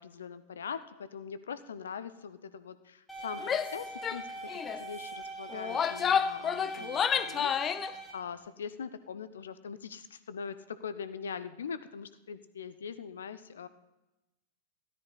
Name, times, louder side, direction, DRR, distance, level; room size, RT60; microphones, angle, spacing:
voice 1, 0.0-13.7, left 6 dB, 65° left, 14 dB, 0.7 m, -42 dB
sound 1, 3.1-8.1, right 2 dB, 5° left, 2.2 m, -42 dB
Female speech woman speaking / Yell, 3.4-3.7 4.0-4.2 4.5-4.8 5.5-7.9, left 7 dB, 25° left, 0.5 m, -30 dB
13.5 x 12.5 x 4.0 m, 0.97 s
figure-of-eight pair, 90°, 0 cm